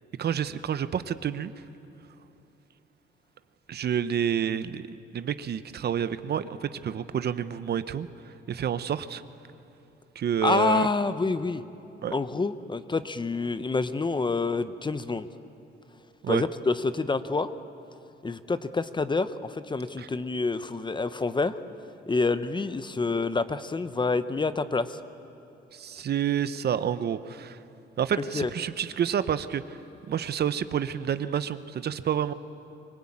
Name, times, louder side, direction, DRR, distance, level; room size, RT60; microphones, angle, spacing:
voice 1, 0.2-1.5 3.7-9.2 10.1-10.9 12.0-12.1 16.2-16.4 20.0-20.1 25.7-27.6 28.0-29.8 30.1-32.3, right 8 dB, 55° right, 13 dB, 0.8 m, -29 dB
voice 2, 10.4-11.6 12.1-15.3 16.3-17.5 18.2-21.6 22.1-25.0 28.3-28.5, left 3 dB, 25° left, 12 dB, 0.8 m, -27 dB
24.5 x 18.5 x 8.7 m, 3.0 s
cardioid pair, 90°, 20 cm